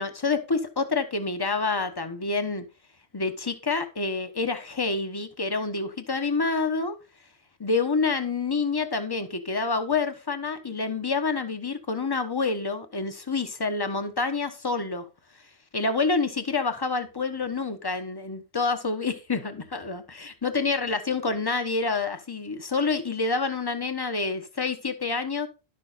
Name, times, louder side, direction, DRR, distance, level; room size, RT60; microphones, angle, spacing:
voice 1, 0.0-2.6 3.1-6.9 7.6-15.0 15.7-25.5, left 4 dB, 20° left, 1.2 m, -27 dB
11.5 x 6.6 x 4.1 m
omnidirectional pair, 1.1 m